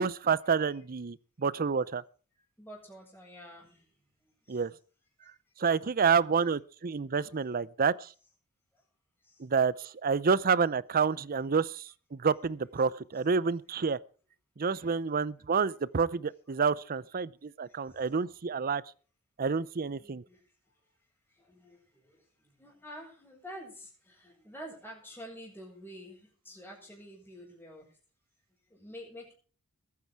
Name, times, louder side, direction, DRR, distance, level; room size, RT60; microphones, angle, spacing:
voice 1, 0.0-2.0 4.5-4.7 5.6-8.1 9.4-14.0 14.6-18.8 19.4-20.2, right 5 dB, 40° right, 0.6 m, -28 dB
voice 2, 2.3-4.6 5.2-5.5 6.0-6.4 7.2-7.4 8.7-8.8 9.2-9.5 10.4-10.7 14.7-15.0 17.6-18.1 19.9-20.5 20.8-20.9 21.3-28.0 28.7-29.3, equal, 10° left, 6.8 m, -50 dB
21.5 x 9.6 x 4.7 m
head